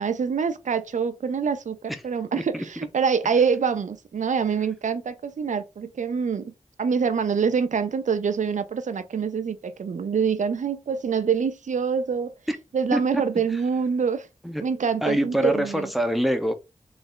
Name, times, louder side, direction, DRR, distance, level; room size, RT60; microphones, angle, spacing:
voice 1, 0.0-6.5 6.8-12.3 12.7-14.3 14.6-15.9, right 6 dB, 80° right, 0.6 m, -25 dB
voice 2, 15.0-16.5, right 1 dB, ahead, 1.0 m, -24 dB
4.0 x 3.4 x 3.9 m
cardioid pair, 55°, 13 cm